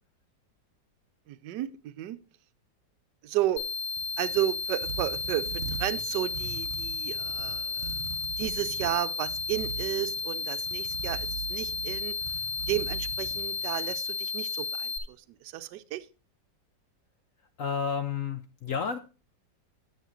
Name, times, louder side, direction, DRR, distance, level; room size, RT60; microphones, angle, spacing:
voice 1, 1.3-2.2 3.2-3.6 4.2-8.0 8.4-12.1 12.7-16.1, right 14 dB, 75° right, 11 dB, 1.2 m, -33 dB
sound 1, 3.5-14.1, right 7 dB, 55° right, 0.9 m, -41 dB
sound 2, 3.6-15.0, left 5 dB, 40° left, 1.7 m, -33 dB
voice 2, 17.6-19.0, left 6 dB, 65° left, 8 dB, 0.8 m, -31 dB
10.0 x 9.1 x 3.0 m, 0.34 s
omnidirectional pair, 2.0 m